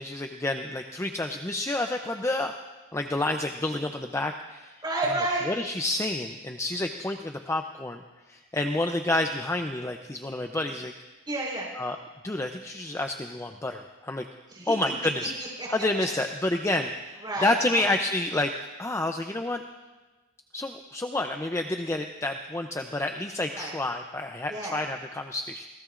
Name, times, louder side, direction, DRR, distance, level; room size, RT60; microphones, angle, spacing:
voice 1, 0.0-2.5 2.9-4.8 5.5-8.0 8.3-10.9 11.8-12.0 12.2-14.3 14.7-15.3 15.7-16.9 17.4-18.5 18.8-19.6 20.5-25.7, left 2 dB, 15° left, 5 dB, 0.5 m, -29 dB
voice 2, 4.8-5.5 11.3-11.7 14.5-14.7 15.6-15.7 17.2-17.9 23.5-23.7 24.5-24.8, right 2 dB, 20° right, -5 dB, 4.4 m, -30 dB
27.0 x 18.5 x 2.5 m, 1.2 s
head